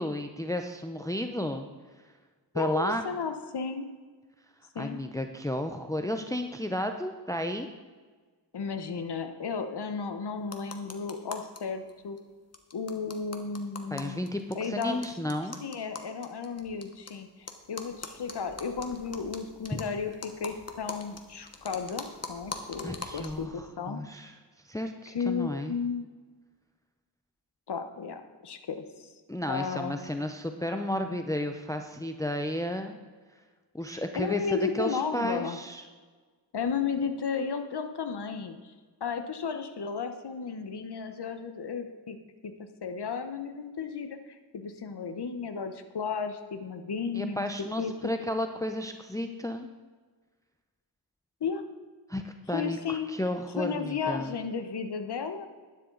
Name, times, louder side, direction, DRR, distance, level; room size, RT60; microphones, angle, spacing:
voice 1, 0.0-1.7 2.5-3.0 4.8-7.7 13.9-15.6 19.7-19.8 22.8-24.3 24.7-25.7 29.3-33.0 33.7-35.8 47.1-49.7 52.1-54.3, left 1 dB, 10° left, 6 dB, 0.7 m, -32 dB
voice 2, 2.5-3.9 4.7-5.0 8.5-12.2 12.7-14.3 14.5-15.0 15.6-17.3 17.7-24.0 25.1-26.1 27.7-29.1 29.5-30.0 33.9-35.6 36.5-38.6 39.0-42.2 42.4-47.5 47.8-48.1 51.4-51.6 52.5-53.1 53.6-55.5, left 5 dB, 65° left, 8 dB, 1.1 m, -34 dB
sound 1, 10.4-11.6 11.9-12.0 12.2-12.3 12.5-17.1 17.5-23.5, left 3 dB, 35° left, 1.2 m, -43 dB
12.0 x 9.9 x 3.9 m, 1.4 s
wide cardioid pair, 75°, 43 cm